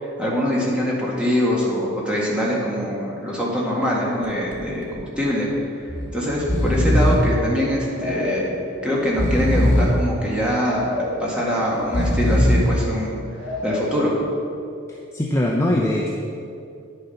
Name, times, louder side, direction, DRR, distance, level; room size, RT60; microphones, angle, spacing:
voice 1, 0.0-5.5 6.1-8.5 8.8-13.2 13.6-14.1, equal, 5° right, -5 dB, 1.8 m, -23 dB
Breathing, 4.2-4.6 4.9-5.0 5.9-6.1 6.3-7.3 7.9-8.6 9.0-10.0 10.6-11.3 11.8-12.8 13.4-14.0, equal, 65° left, 1.6 m, -21 dB
voice 2, 14.9-16.1, left 1 dB, 15° left, -2 dB, 0.6 m, -22 dB
9.7 x 6.8 x 5.6 m, 2.6 s
head